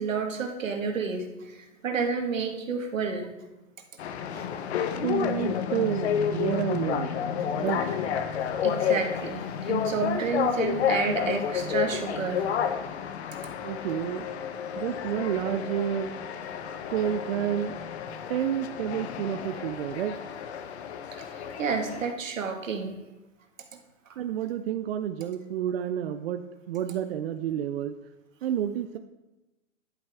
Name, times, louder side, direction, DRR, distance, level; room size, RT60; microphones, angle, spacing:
voice 1, 0.0-3.3 4.3-4.4 8.6-12.5 21.1-23.0, right 5 dB, 85° right, 4 dB, 1.8 m, -30 dB
sound 1, 4.0-22.1, left 8 dB, 55° left, 1.0 m, -30 dB
voice 2, 5.0-7.1 7.6-8.4 13.6-14.3 14.8-16.1 16.9-17.8 18.3-20.2 24.2-27.9 28.4-29.0, right 10 dB, 50° right, 8 dB, 0.6 m, -30 dB
11.0 x 8.8 x 3.5 m, 1.0 s
hypercardioid pair, 140°, 38 cm